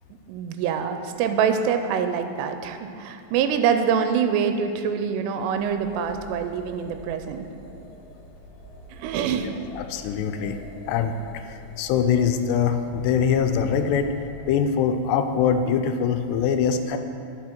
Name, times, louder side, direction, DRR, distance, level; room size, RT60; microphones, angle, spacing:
voice 1, 0.3-7.5 8.9-9.5, right 7 dB, 85° right, 8 dB, 2.7 m, -25 dB
sound 1, 5.3-14.5, left 1 dB, 55° left, 1.3 m, -45 dB
voice 2, 9.8-10.6 10.9-14.1 14.5-17.0, left 7 dB, 85° left, 7 dB, 2.6 m, -23 dB
10.0 x 5.9 x 4.4 m, 2.4 s
omnidirectional pair, 4.8 m